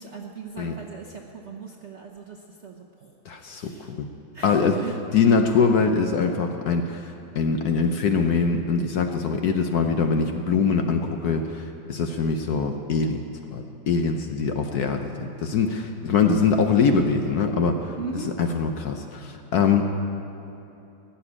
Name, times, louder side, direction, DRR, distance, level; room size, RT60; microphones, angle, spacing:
voice 1, 0.0-3.1 3.4-3.9 4.3-4.9 18.0-18.3, right 5 dB, 55° right, 0 dB, 0.8 m, -39 dB
voice 2, 3.3-4.1 4.4-13.2 13.5-19.9, left 5 dB, 60° left, 5 dB, 1.1 m, -23 dB
16.0 x 6.9 x 9.7 m, 2.9 s
omnidirectional pair, 2.2 m